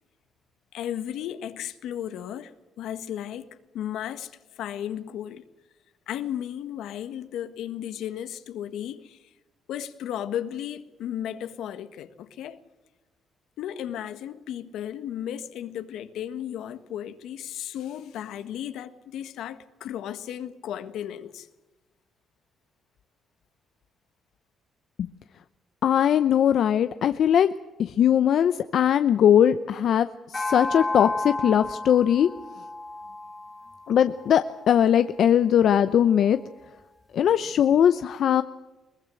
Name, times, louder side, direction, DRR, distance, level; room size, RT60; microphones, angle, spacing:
voice 1, 0.7-5.4 6.1-9.3 9.7-12.6 13.6-21.5, left 10 dB, 85° left, 1.6 m, -35 dB
voice 2, 25.8-27.5 27.8-32.3 33.9-36.4 37.1-38.4, left 9 dB, 65° left, 0.7 m, -20 dB
sound 1, 30.3-34.9, left 2 dB, 20° left, 0.8 m, -33 dB
22.0 x 20.0 x 7.7 m
cardioid pair, 90°, 0 cm